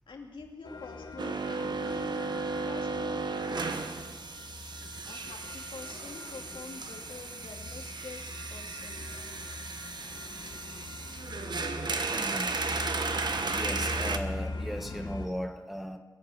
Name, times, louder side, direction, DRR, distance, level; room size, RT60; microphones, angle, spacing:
voice 1, 0.1-2.3 2.6-3.8 5.1-9.1, left 4 dB, 80° left, 1 dB, 2.4 m, -47 dB
sound 1, 0.6-15.3, left 2 dB, 55° left, 1.5 m, -42 dB
sound 2, 1.2-14.2, right 4 dB, 60° right, 1.1 m, -35 dB
voice 2, 12.2-12.6 13.5-16.0, equal, 5° right, 5 dB, 1.3 m, -37 dB
22.0 x 7.7 x 7.1 m, 1.3 s
wide cardioid pair, 80°, 8 cm